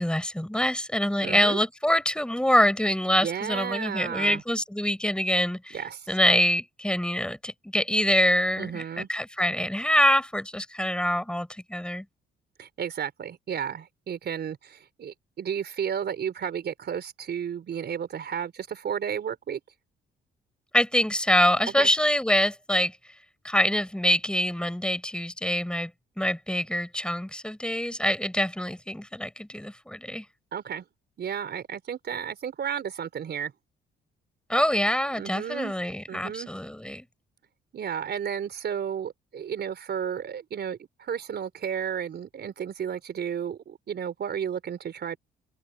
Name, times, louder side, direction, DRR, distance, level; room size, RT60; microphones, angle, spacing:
voice 1, 0.0-5.8 6.1-12.0 20.7-22.9 23.4-25.9 26.2-30.2 34.5-37.0, left 1 dB, 5° left, 6.5 m, -25 dB
voice 2, 1.2-1.6 3.1-4.4 5.7-6.2 8.6-9.1 12.6-19.6 21.8-21.9 30.5-30.8 31.2-33.5 35.1-35.7 36.1-36.5 37.7-45.2, right 8 dB, 55° right, 4.2 m, -33 dB
open air
cardioid pair, 90°, 20 cm